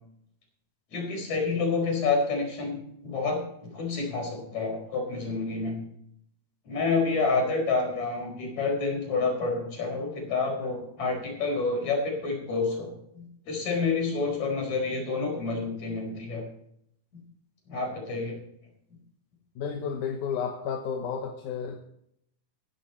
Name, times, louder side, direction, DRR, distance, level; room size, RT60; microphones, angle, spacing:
voice 1, 0.9-3.4 3.7-5.8 6.7-16.4 17.7-18.4, left 4 dB, 55° left, 1 dB, 5.9 m, -28 dB
voice 2, 19.6-21.8, left 6 dB, 70° left, 4 dB, 2.5 m, -32 dB
17.0 x 11.0 x 4.3 m, 0.72 s
omnidirectional pair, 3.8 m